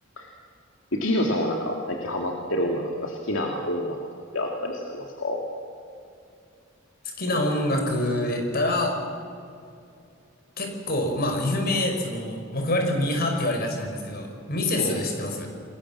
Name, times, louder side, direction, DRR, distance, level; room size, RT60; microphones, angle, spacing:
voice 1, 0.9-4.0 4.3-5.4 14.8-15.1, left 1 dB, 70° left, 1 dB, 2.7 m, -27 dB
voice 2, 7.2-9.0 10.6-15.5, left 1 dB, 50° left, 3 dB, 5.4 m, -26 dB
29.0 x 21.5 x 7.5 m, 2.5 s
head